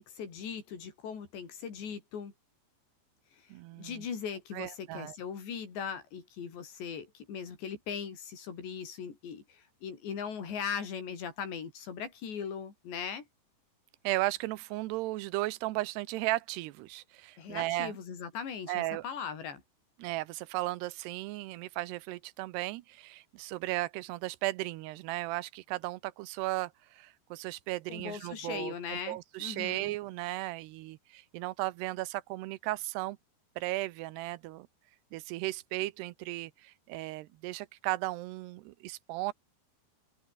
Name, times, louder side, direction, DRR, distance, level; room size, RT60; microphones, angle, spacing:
voice 1, 0.0-2.3 3.3-13.2 17.4-19.6 27.9-29.9, left 7 dB, 75° left, 7.0 m, -39 dB
voice 2, 3.5-4.1 4.5-5.2 14.0-18.0 18.7-19.0 20.0-33.2 33.6-34.7 35.1-39.3, right 18 dB, 75° right, 2.7 m, -35 dB
omnidirectional pair, 5.1 m